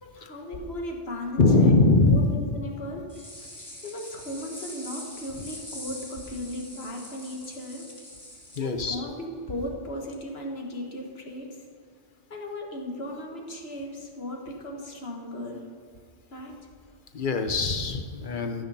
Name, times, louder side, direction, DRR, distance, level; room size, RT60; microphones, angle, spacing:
voice 1, 0.0-3.1 3.8-7.8 8.6-11.6 12.3-15.7 16.3-16.6, left 1 dB, 70° left, 1 dB, 1.8 m, -36 dB
voice 2, 1.4-2.3 8.6-9.0 17.1-18.6, left 3 dB, 50° left, 6 dB, 1.1 m, -21 dB
sound 1, 3.1-8.6, left 1 dB, 20° left, 2.5 m, -43 dB
14.0 x 6.4 x 5.6 m, 2.1 s
omnidirectional pair, 1.1 m